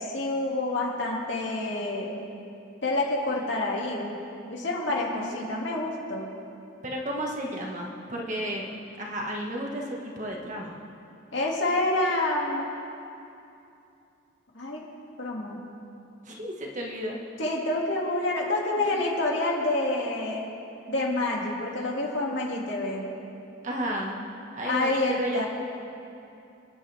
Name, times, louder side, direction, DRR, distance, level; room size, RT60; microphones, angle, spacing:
voice 1, 0.0-2.2 2.8-4.2 4.5-6.3 11.3-12.7 14.5-14.8 15.2-15.6 17.4-20.5 20.9-23.0 24.6-25.5, left 2 dB, 65° left, -2 dB, 2.5 m, -28 dB
voice 2, 5.1-5.5 6.8-8.7 9.0-10.8 16.2-17.2 23.6-24.2 24.5-25.5, equal, 40° right, -1 dB, 1.7 m, -33 dB
29.0 x 10.5 x 3.6 m, 2.7 s
head